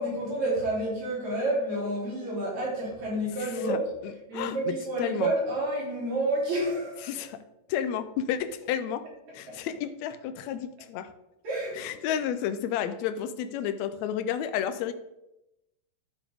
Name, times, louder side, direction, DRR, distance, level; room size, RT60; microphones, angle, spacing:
voice 1, 0.0-3.9 4.3-7.3 9.5-9.6 11.4-11.9, right 1 dB, 60° right, -5 dB, 4.6 m, -29 dB
voice 2, 3.4-3.8 4.0-5.3 7.0-7.4 7.7-9.0 9.3-11.1 11.8-14.9, left 9 dB, 80° left, 11 dB, 1.6 m, -31 dB
11.0 x 7.1 x 3.5 m, 0.91 s
omnidirectional pair, 3.7 m